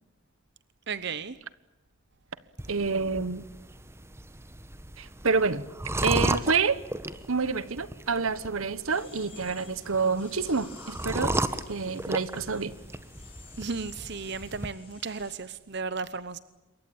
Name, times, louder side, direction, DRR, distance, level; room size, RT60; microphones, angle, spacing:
voice 1, 0.9-1.4 13.6-16.4, right 5 dB, 50° right, 0.9 m, -34 dB
sound 1, 2.6-14.7, right 1 dB, 10° right, 1.1 m, -35 dB
voice 2, 2.7-3.4 5.0-5.6 6.0-6.8 7.3-11.3 11.7-12.7, right 4 dB, 75° right, 1.3 m, -28 dB
sound 2, 8.9-15.4, left 6 dB, 25° left, 6.3 m, -52 dB
27.5 x 23.0 x 8.8 m
head